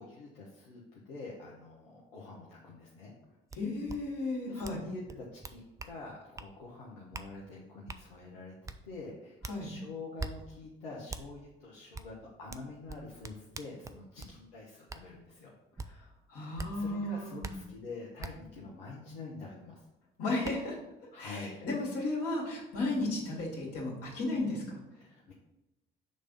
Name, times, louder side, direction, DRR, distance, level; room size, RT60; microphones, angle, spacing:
voice 1, 0.0-3.1 4.5-8.5 8.8-15.5 16.3-19.9 21.1-21.7 24.9-25.3, left 3 dB, 75° left, -4 dB, 0.9 m, -46 dB
voice 2, 3.5-4.8 9.5-9.7 15.9-17.6 20.2-20.8 21.2-24.8, left 2 dB, 50° left, -2 dB, 2.1 m, -34 dB
sound 1, 3.5-3.6 3.9-4.0 4.6-4.8 5.1-5.9 6.4-6.5 7.1-7.3 7.9-8.0 8.6-8.8 9.4-9.6 10.2-10.3 11.1-11.2 11.9-12.1 12.5-14.3 14.9-15.0 15.8-15.9 16.6-16.7 17.4-17.5 18.2-18.3 19.8-19.9 20.4-20.5, right 3 dB, 10° right, 0.3 m, -41 dB
6.4 x 3.3 x 5.4 m, 0.95 s
figure-of-eight pair, 50°, 29 cm